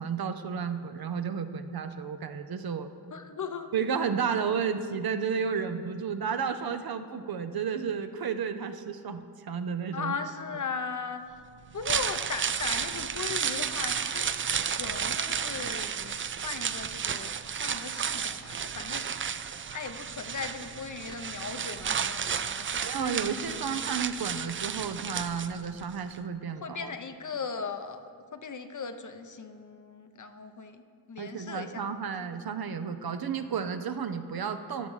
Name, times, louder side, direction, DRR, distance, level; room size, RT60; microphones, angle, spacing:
voice 1, 0.0-2.9 3.7-10.1 22.8-26.9 31.2-34.9, right 6 dB, 55° right, 9 dB, 0.7 m, -32 dB
voice 2, 3.1-3.7 9.9-11.2 11.7-14.2 14.8-23.2 26.6-30.8 31.1-31.8, left 5 dB, 45° left, 8 dB, 0.8 m, -38 dB
sound 1, 11.6-25.8 26.1-26.2, right 7 dB, 30° right, 0.4 m, -32 dB
14.5 x 6.0 x 3.9 m, 2.1 s
supercardioid pair, 40°, 43 cm